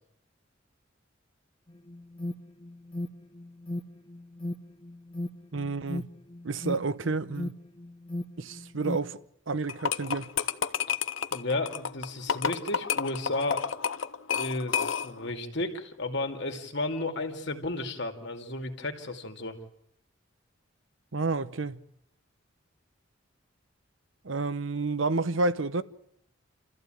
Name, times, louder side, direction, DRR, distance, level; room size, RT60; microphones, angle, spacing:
Alarm, 1.7-9.2, left 1 dB, 25° left, 0.8 m, -38 dB
voice 1, 5.5-6.1 6.4-7.5 8.4-9.2 9.5-10.3 21.1-21.8 24.2-25.8, right 3 dB, 75° right, 0.9 m, -30 dB
sound 1, 9.7-15.3, left 7 dB, 80° left, 0.8 m, -30 dB
voice 2, 11.3-13.7 14.3-19.6, left 2 dB, 60° left, 2.5 m, -33 dB
28.0 x 14.5 x 9.1 m
head